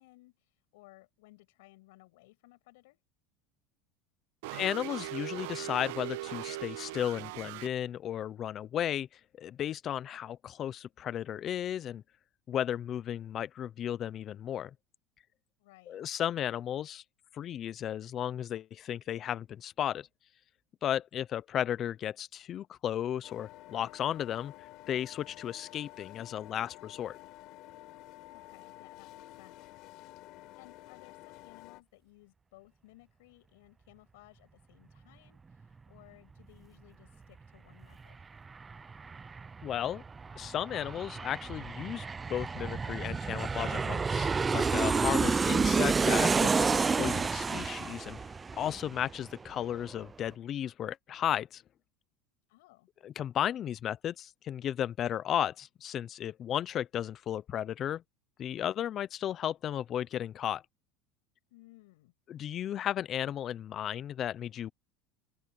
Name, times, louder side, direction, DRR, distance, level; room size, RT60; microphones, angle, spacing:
voice 1, 0.0-3.0 15.6-16.0 28.3-30.0 30.6-38.2 52.5-52.9 61.5-62.1, left 21 dB, 85° left, 6.4 m, -59 dB
sound 1, 4.4-7.7, right 17 dB, 80° right, 1.1 m, -39 dB
voice 2, 4.5-9.1 9.4-12.0 12.5-14.7 15.9-17.0 17.3-20.1 20.8-27.2 39.6-40.0 40.3-48.2 48.6-51.6 53.0-58.0 58.4-60.6 62.3-64.7, left 10 dB, 40° left, 0.7 m, -34 dB
sound 2, 23.2-31.8, left 19 dB, 60° left, 4.7 m, -51 dB
Aircraft, 37.8-37.9 38.2-49.5 49.8-49.9, right 4 dB, 20° right, 0.5 m, -30 dB
open air
supercardioid pair, 125°, 0 cm